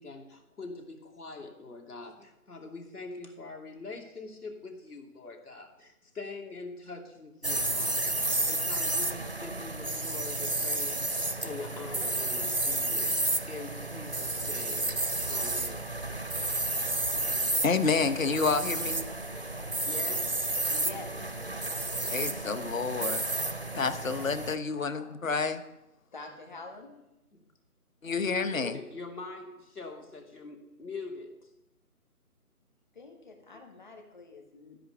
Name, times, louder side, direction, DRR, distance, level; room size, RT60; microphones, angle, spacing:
voice 1, 0.0-13.2 13.5-15.0 15.3-15.9 19.8-20.6 27.3-27.4 28.2-31.4, left 3 dB, 75° left, 2 dB, 2.8 m, -43 dB
sound 1, 7.4-24.6, right 2 dB, 40° right, 0.4 m, -31 dB
voice 2, 17.1-19.1 22.1-23.2 23.7-25.6 28.0-28.8, left 4 dB, 60° left, 11 dB, 1.0 m, -29 dB
voice 3, 20.7-21.1 24.8-25.2 26.1-27.0 32.9-34.8, left 3 dB, 30° left, 3 dB, 1.7 m, -46 dB
14.0 x 5.3 x 7.9 m, 0.94 s
figure-of-eight pair, 170°, 45 cm